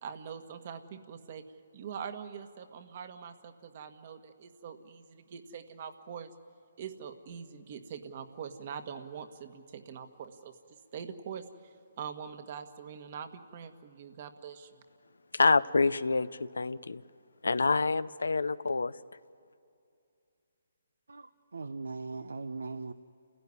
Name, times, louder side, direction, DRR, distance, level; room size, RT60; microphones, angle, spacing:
voice 1, 0.0-1.4 1.7-6.3 6.8-10.5 10.9-11.4 12.0-14.8, right 7 dB, 45° right, 8 dB, 1.6 m, -43 dB
voice 2, 15.3-17.0 17.4-18.9, left 3 dB, 85° left, 15 dB, 0.7 m, -27 dB
voice 3, 21.1-22.9, right 3 dB, 85° right, 12 dB, 0.8 m, -39 dB
29.0 x 16.5 x 9.7 m, 2.5 s
hypercardioid pair, 150°, 0 cm